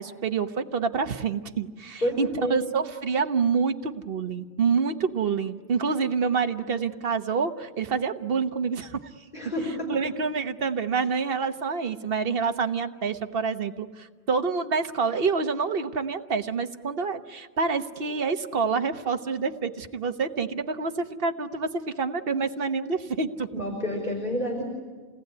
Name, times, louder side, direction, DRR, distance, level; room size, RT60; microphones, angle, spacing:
voice 1, 0.0-9.0 9.9-21.7 22.0-23.5, right 5 dB, 55° right, 7 dB, 1.4 m, -27 dB
voice 2, 2.0-2.6 9.3-10.0 23.5-24.6, left 1 dB, 50° left, -2 dB, 5.2 m, -29 dB
29.0 x 19.0 x 9.6 m, 1.5 s
omnidirectional pair, 1.1 m